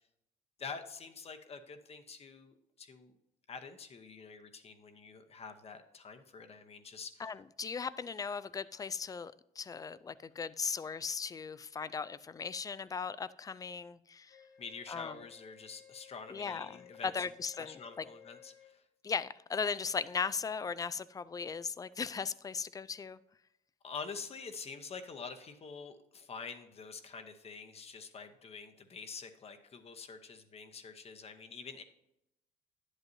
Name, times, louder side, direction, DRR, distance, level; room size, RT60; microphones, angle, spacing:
voice 1, 0.6-3.1 3.5-7.3 14.6-17.2 17.6-18.8 23.8-31.8, left 5 dB, 35° left, 0.9 m, -47 dB
voice 2, 7.2-14.4 14.9-15.1 16.3-18.0 19.0-23.2, left 5 dB, 20° left, 0.3 m, -38 dB
Wind instrument woodwind instrument, 14.3-18.7, left 9 dB, 80° left, 2.6 m, -57 dB
10.5 x 8.0 x 2.7 m
cardioid pair, 110°, 17 cm